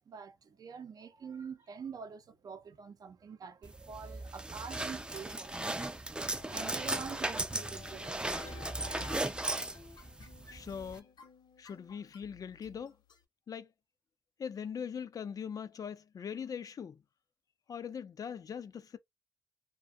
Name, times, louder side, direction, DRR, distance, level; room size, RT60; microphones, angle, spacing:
voice 1, 0.1-6.0 6.5-9.4, right 6 dB, 55° right, 0.6 m, -46 dB
sound 1, 3.6-11.0, right 2 dB, 10° right, 0.4 m, -37 dB
sound 2, 6.4-13.2, left 6 dB, 65° left, 0.9 m, -54 dB
voice 2, 10.5-11.0 11.6-13.0 13.5-13.7 14.4-17.0 17.7-19.0, left 7 dB, 50° left, 0.4 m, -41 dB
2.4 x 2.2 x 2.5 m
cardioid pair, 65°, 8 cm